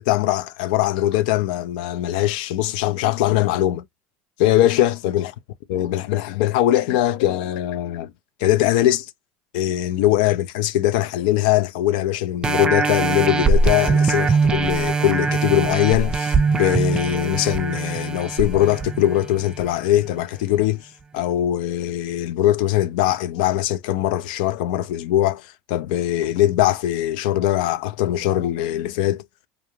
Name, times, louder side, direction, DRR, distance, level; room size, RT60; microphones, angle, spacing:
voice 1, 0.1-3.8 4.4-5.3 5.7-8.1 8.4-9.1 9.5-20.9 21.1-29.2, left 13 dB, 80° left, 0.3 m, -21 dB
sound 1, 12.4-19.6 20.2-20.3, right 4 dB, 20° right, 0.4 m, -22 dB
2.4 x 2.2 x 3.0 m
supercardioid pair, 110°, 5 cm